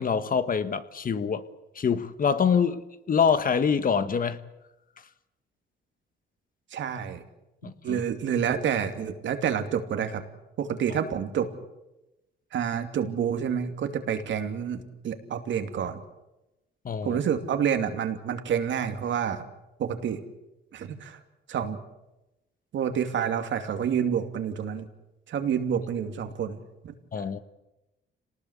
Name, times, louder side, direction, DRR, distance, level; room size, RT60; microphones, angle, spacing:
voice 1, 0.0-1.4 1.7-4.4 7.6-8.0 16.8-17.2 27.1-27.4, left 6 dB, 45° left, 12 dB, 1.6 m, -25 dB
voice 2, 6.7-7.2 7.8-10.2 10.6-11.5 12.5-16.0 17.0-19.4 19.8-20.2 20.7-21.2 21.5-21.8 22.7-24.9 25.3-27.0, right 8 dB, 70° right, 6 dB, 2.7 m, -28 dB
27.0 x 19.0 x 8.3 m, 0.98 s
cardioid pair, 90°, 20 cm